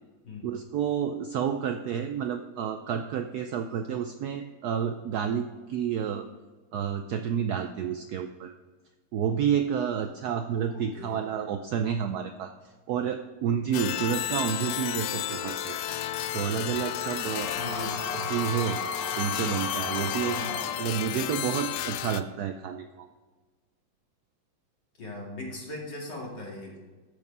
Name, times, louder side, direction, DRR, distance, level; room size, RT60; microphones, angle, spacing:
voice 1, 0.4-6.3 6.7-8.5 9.1-12.5 12.9-15.8 16.3-17.5 18.3-18.8 19.2-20.4 20.8-23.1, right 8 dB, 90° right, 7 dB, 0.8 m, -30 dB
voice 2, 10.6-11.2 17.5-18.0 20.3-20.6 25.0-26.8, left 2 dB, 55° left, -3 dB, 3.0 m, -39 dB
sound 1, 13.7-22.2, left 12 dB, 85° left, 0.8 m, -32 dB
sound 2, 17.3-20.8, left 3 dB, 25° left, 1.0 m, -35 dB
13.5 x 4.9 x 5.4 m, 1.3 s
omnidirectional pair, 2.3 m